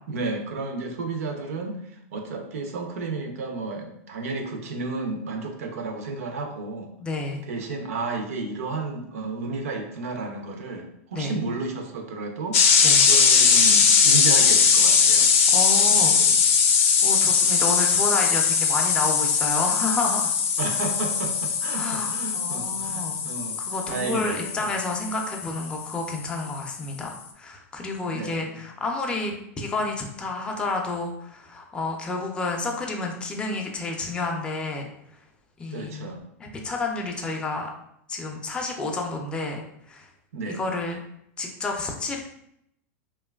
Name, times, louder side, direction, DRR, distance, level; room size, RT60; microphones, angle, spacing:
voice 1, 0.1-6.9 7.4-12.6 13.1-15.3 15.9-16.4 20.6-23.6 23.9-24.7 28.1-28.6 35.7-36.2 40.3-40.6, right 3 dB, 85° right, 4 dB, 0.5 m, -32 dB
voice 2, 7.0-7.4 11.1-11.3 12.8-13.0 15.5-16.2 17.0-20.3 21.7-23.2 23.6-34.8 35.6-36.1 36.4-37.7 38.1-39.6 39.9-40.1 40.5-41.0 41.4-42.2, left 3 dB, 15° left, 1 dB, 0.4 m, -30 dB
sound 1, 12.5-26.1, left 6 dB, 75° left, 0.4 m, -20 dB
3.0 x 2.2 x 2.2 m, 0.76 s
supercardioid pair, 130°, 8 cm